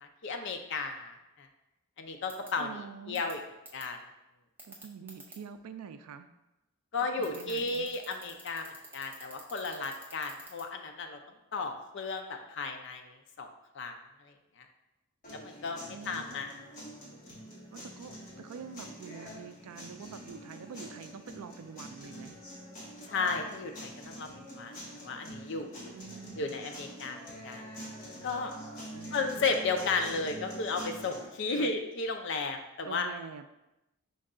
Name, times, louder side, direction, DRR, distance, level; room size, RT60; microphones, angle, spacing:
voice 1, 0.0-1.5 2.0-2.7 3.1-3.4 3.7-4.0 6.9-11.2 11.5-13.5 13.7-13.9 14.2-14.7 15.3-16.5 23.1-24.3 24.5-24.7 25.0-25.9 26.4-27.2 27.4-27.6 28.2-28.5 29.1-33.1, left 4 dB, 55° left, 5 dB, 0.4 m, -34 dB
sound 1, 2.3-2.5 3.1-3.3 3.6-3.8 4.6-5.3 7.2-10.6, right 2 dB, 10° right, 0.5 m, -48 dB
voice 2, 2.6-3.2 4.6-6.3 7.0-7.9 15.9-16.3 17.7-22.4 25.9-26.6 28.9-29.4 31.5-31.7 32.8-33.5, right 6 dB, 85° right, 10 dB, 0.3 m, -46 dB
sound 2, 15.2-31.2, equal, 40° left, 1.1 m, -46 dB
5.2 x 2.3 x 3.7 m, 0.95 s
head